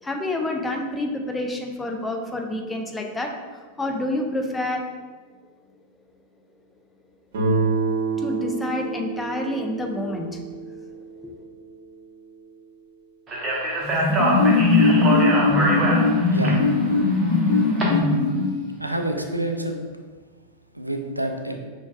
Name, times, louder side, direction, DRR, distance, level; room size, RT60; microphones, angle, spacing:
voice 1, 0.0-4.9 8.2-10.4 10.9-11.4, left 1 dB, 10° left, 2 dB, 0.5 m, -28 dB
Guitar, 7.3-12.1, right 4 dB, 55° right, 0.9 m, -28 dB
Speech, 13.3-17.8, right 1 dB, 25° right, 0.8 m, -25 dB
sound 1, 13.8-18.7, left 3 dB, 40° left, 0.9 m, -19 dB
voice 2, 16.3-16.6 18.8-19.8 20.7-21.6, right 1 dB, 85° right, 4 dB, 0.3 m, -27 dB
6.0 x 2.3 x 2.3 m, 1.4 s
figure-of-eight pair, 90°, 0 cm